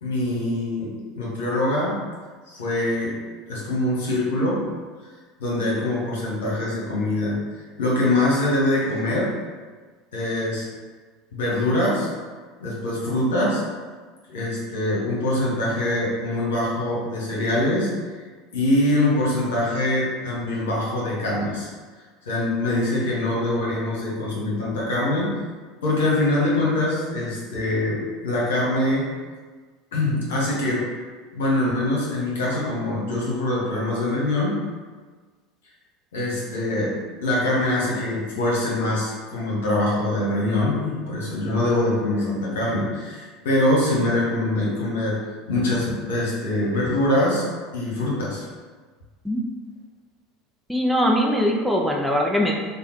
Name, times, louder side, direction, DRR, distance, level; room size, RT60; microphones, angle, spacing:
voice 1, 0.0-2.0 2.5-3.2 3.5-4.7 5.4-7.4 7.8-9.4 10.1-10.7 11.3-12.1 12.6-13.7 14.3-18.2 18.5-21.7 22.2-25.4 25.8-29.1 29.9-30.9 31.3-34.6 36.1-45.2 45.5-47.4 47.7-48.5, left 1 dB, 70° left, -5 dB, 1.1 m, -23 dB
voice 2, 50.7-52.5, equal, ahead, -1 dB, 0.5 m, -21 dB
3.4 x 2.2 x 4.4 m, 1.4 s
figure-of-eight pair, 75°, 0 cm